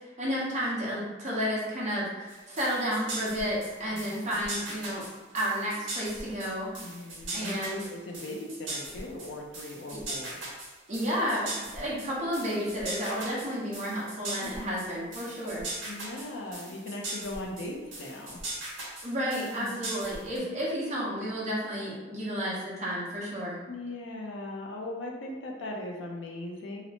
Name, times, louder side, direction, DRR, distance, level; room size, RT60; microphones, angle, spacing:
voice 1, 0.2-5.0 5.3-6.7 7.3-7.9 9.9-10.0 10.9-15.7 19.0-23.6, equal, 40° right, -7 dB, 0.8 m, -31 dB
sound 1, 2.3-20.4, right 2 dB, 85° right, 0.9 m, -39 dB
voice 2, 3.9-4.3 6.8-7.6 7.9-10.4 14.4-14.6 15.9-18.4 19.6-20.0 20.3-20.4 23.7-26.8, left 1 dB, 80° left, 0 dB, 0.5 m, -39 dB
2.8 x 2.0 x 2.8 m, 1.3 s
head